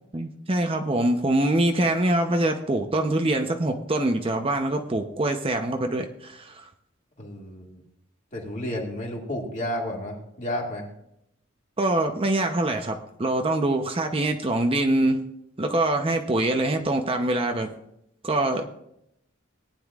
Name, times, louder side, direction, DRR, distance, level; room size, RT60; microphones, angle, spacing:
voice 1, 0.1-6.7 11.8-15.2 15.6-17.7 18.2-18.7, right 1 dB, 25° right, 4 dB, 0.7 m, -24 dB
voice 2, 7.2-7.8 8.3-10.9, left 1 dB, 35° left, -1 dB, 2.2 m, -32 dB
18.5 x 10.0 x 2.4 m, 0.78 s
head